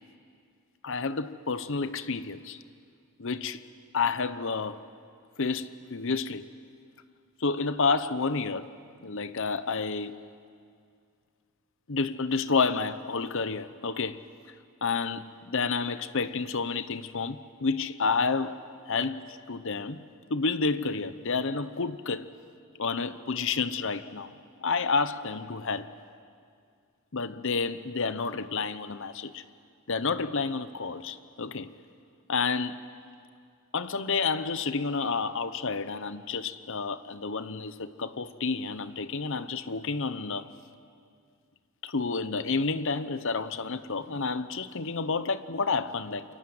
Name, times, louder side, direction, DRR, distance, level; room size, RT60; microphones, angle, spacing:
voice 1, 0.8-2.6 3.2-3.6 3.9-4.8 5.4-6.5 7.4-8.7 9.0-10.2 11.9-14.2 14.8-20.0 20.3-22.3 22.8-24.3 24.6-25.9 27.1-29.4 29.9-31.7 32.3-32.8 33.7-40.5 41.8-46.2, left 4 dB, 60° left, 0.9 m, -30 dB
28.5 x 23.5 x 7.8 m
head